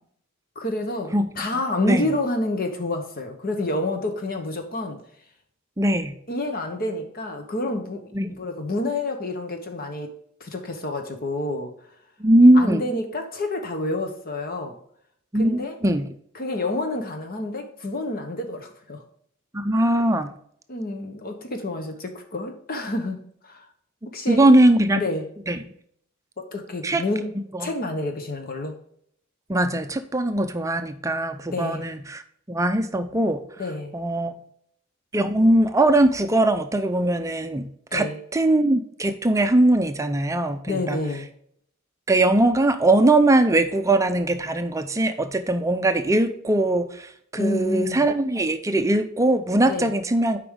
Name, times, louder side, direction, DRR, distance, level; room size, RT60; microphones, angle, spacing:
voice 1, 0.5-5.0 6.3-10.1 10.4-11.7 12.5-14.8 15.3-15.8 16.3-19.0 20.7-23.7 24.1-24.5 24.9-25.3 26.4-28.7 31.5-31.9 33.6-33.9 37.9-38.2 40.7-41.3 47.4-48.1 49.6-49.9, left 2 dB, 45° left, 5 dB, 1.0 m, -29 dB
voice 2, 5.8-6.1 8.1-8.3 12.2-12.8 15.3-16.1 19.5-20.3 24.3-25.0 25.5-25.6 26.8-27.0 27.6-27.7 29.5-32.2 32.5-33.4 33.9-34.3 35.1-38.1 38.3-41.0 42.1-46.8 47.3-50.4, right 1 dB, 15° right, 9 dB, 0.5 m, -20 dB
8.2 x 5.1 x 3.7 m, 0.66 s
head